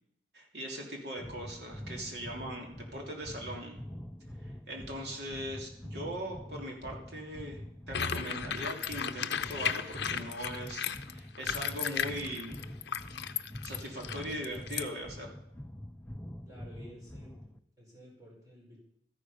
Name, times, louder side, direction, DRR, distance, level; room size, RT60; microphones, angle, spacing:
voice 1, 0.3-3.8 4.4-7.6 7.9-12.6 13.6-15.4, equal, 60° right, 0 dB, 3.0 m, -40 dB
sound 1, 1.2-17.6, equal, 10° left, 0.4 m, -45 dB
sound 2, 7.9-14.8, left 8 dB, 60° left, 0.6 m, -35 dB
voice 2, 16.4-18.8, equal, 20° right, -3 dB, 4.8 m, -53 dB
13.5 x 9.8 x 5.6 m, 0.74 s
head